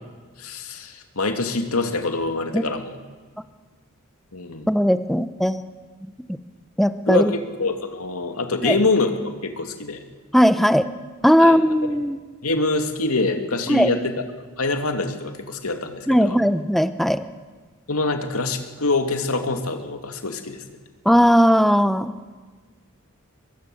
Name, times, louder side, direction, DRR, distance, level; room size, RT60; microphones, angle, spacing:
voice 1, 0.4-3.0 4.3-4.7 7.1-10.0 11.4-12.0 12.4-14.2 14.6-16.4 17.9-20.6, left 3 dB, 90° left, 6 dB, 2.5 m, -25 dB
voice 2, 4.7-5.6 6.8-7.3 8.6-8.8 10.3-10.9 11.2-12.2 13.7-13.9 16.1-17.2 21.1-22.2, equal, ahead, 11 dB, 0.8 m, -18 dB
23.5 x 22.0 x 7.9 m, 1.4 s
head